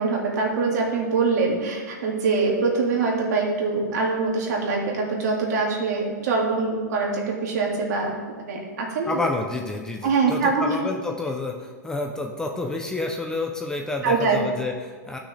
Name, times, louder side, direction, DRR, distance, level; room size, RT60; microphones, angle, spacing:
voice 1, 0.0-8.1 8.4-9.2 10.0-10.8 14.0-14.4, right 4 dB, 65° right, -1 dB, 2.1 m, -24 dB
voice 2, 9.1-15.2, left 2 dB, 5° left, 2 dB, 0.5 m, -29 dB
13.0 x 6.1 x 3.3 m, 1.5 s
hypercardioid pair, 155°, 10 cm